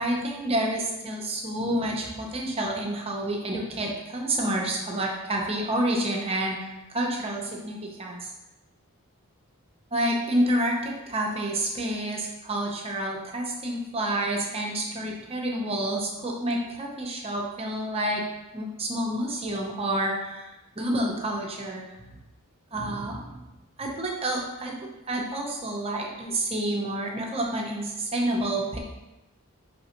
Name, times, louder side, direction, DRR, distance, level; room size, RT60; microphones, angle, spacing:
voice 1, 0.0-8.2 9.9-18.2 18.5-20.5 20.8-21.8 22.7-23.5 23.8-28.8, right 1 dB, 25° right, -1 dB, 0.7 m, -29 dB
5.3 x 3.4 x 2.9 m, 0.99 s
head